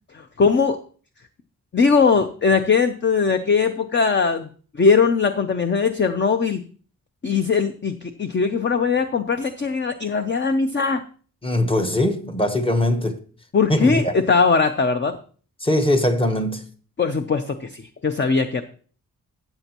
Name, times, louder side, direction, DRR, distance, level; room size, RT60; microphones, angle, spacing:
voice 1, 0.1-0.8 1.7-4.5 4.8-6.6 7.2-11.0 13.5-15.2 17.0-18.6, left 5 dB, 30° left, 0.6 m, -20 dB
voice 2, 11.4-13.2 13.7-14.2 15.6-16.7, left 1 dB, 15° left, 1.1 m, -21 dB
13.5 x 8.1 x 2.9 m
wide cardioid pair, 135°, 36 cm